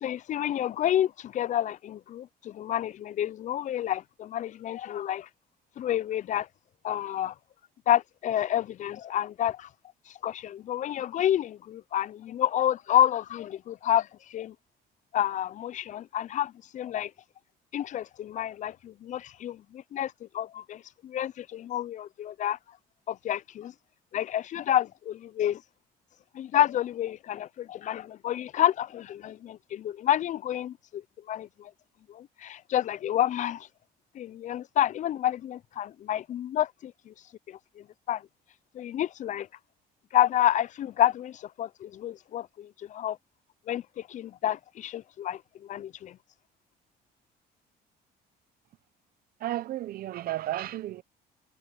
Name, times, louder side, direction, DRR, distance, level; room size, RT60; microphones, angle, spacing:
voice 1, 0.0-5.3 5.8-6.5 6.8-7.3 7.9-9.7 10.2-14.5 15.1-17.1 17.7-22.6 23.1-23.7 24.1-25.6 26.3-31.0 31.3-31.7 32.1-33.7 34.1-37.1 37.5-38.2 38.7-39.5 40.1-43.2 43.7-46.2, left 11 dB, 45° left, 0.4 m, -29 dB
voice 2, 49.4-51.0, right 14 dB, 60° right, 0.8 m, -33 dB
cardioid pair, 110°, 17 cm